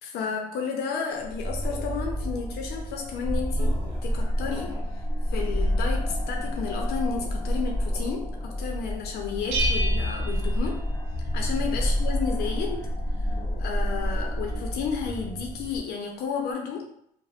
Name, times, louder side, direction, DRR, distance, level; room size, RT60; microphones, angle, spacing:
voice 1, 0.0-4.8 5.3-10.8 11.3-12.8 13.3-16.9, left 6 dB, 75° left, 1 dB, 0.5 m, -32 dB
sound 1, 1.2-15.8, equal, 15° left, 0.6 m, -28 dB
sound 2, 3.6-4.9 5.2-5.7, right 1 dB, 15° right, 1.5 m, -45 dB
Bell, 9.5-11.3, right 1 dB, 70° right, 0.5 m, -31 dB
3.4 x 2.0 x 2.3 m, 0.73 s
cardioid pair, 110°, 17 cm